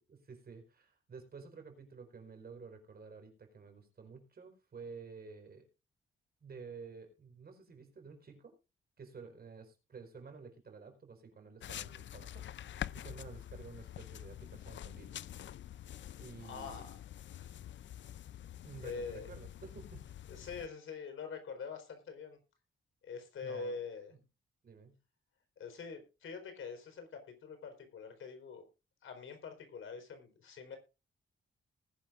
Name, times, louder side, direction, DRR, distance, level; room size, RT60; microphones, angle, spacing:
voice 1, 0.0-5.7 6.4-8.5 9.0-12.5 12.9-15.2 16.2-16.8 18.6-20.0 23.4-23.8 24.6-25.0, right 5 dB, 50° right, 5 dB, 4.6 m, -51 dB
sound 1, 11.6-20.7, left 11 dB, 65° left, 0.5 m, -46 dB
voice 2, 16.4-16.9 17.3-17.5 18.8-19.3 20.3-22.4 23.0-24.1 25.6-28.6 29.0-30.8, left 5 dB, 80° left, 7 dB, 4.3 m, -44 dB
19.5 x 10.5 x 2.5 m, 0.29 s
wide cardioid pair, 130°, 20 cm